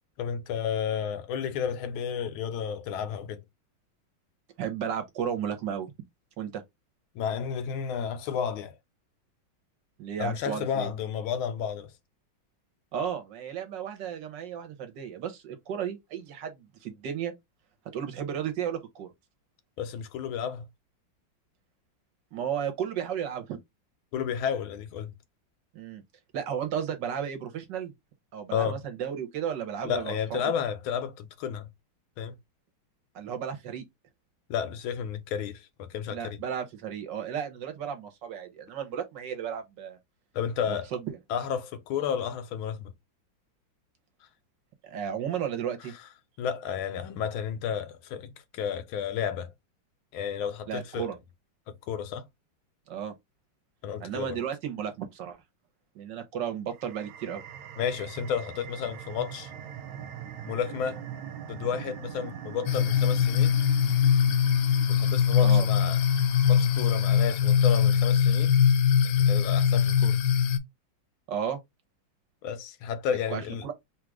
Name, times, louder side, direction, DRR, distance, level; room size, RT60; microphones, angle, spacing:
voice 1, 0.2-3.4 7.1-8.8 10.2-11.9 19.8-20.7 24.1-25.1 28.5-28.8 29.8-31.7 32.2-32.3 34.5-36.4 40.3-40.9 41.3-42.9 46.4-49.5 50.1-51.1 51.7-52.2 53.8-54.4 57.8-59.5 60.4-61.0 61.5-63.5 64.9-66.0 66.5-68.6 69.2-70.2 72.4-73.6, left 8 dB, 90° left, 1.6 m, -32 dB
voice 2, 4.6-5.9 6.4-6.6 10.0-10.9 12.9-17.3 17.9-19.1 22.3-23.6 25.7-26.0 26.3-27.9 28.3-30.4 33.1-33.8 36.1-40.0 40.7-41.2 44.8-45.9 50.7-51.1 52.9-53.1 54.0-55.4 55.9-57.4 65.4-65.7 71.3-71.6 73.3-73.7, right 8 dB, 65° right, 1.5 m, -34 dB
sound 1, 56.7-67.9, right 10 dB, 90° right, 1.5 m, -43 dB
sound 2, 62.7-70.6, left 8 dB, 75° left, 1.1 m, -22 dB
3.8 x 2.5 x 4.6 m
omnidirectional pair, 2.2 m